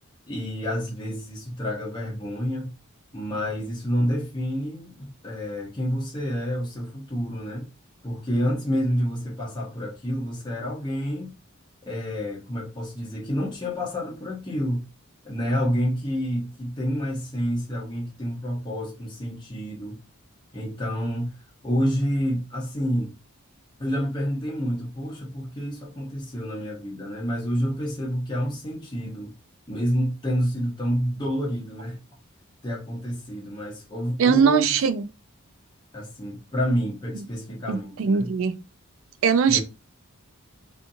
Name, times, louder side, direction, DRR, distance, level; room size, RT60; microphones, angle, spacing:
voice 1, 0.3-2.7 3.1-7.7 8.0-11.3 11.8-14.9 15.2-20.0 20.5-21.4 21.6-23.1 23.8-29.3 29.7-32.0 32.6-34.7 35.9-38.3 39.5-39.6, equal, 20° left, 0.7 m, -28 dB
voice 2, 34.2-35.1 37.7-38.6 39.2-39.6, right 6 dB, 65° right, 0.4 m, -21 dB
2.6 x 2.5 x 2.6 m
head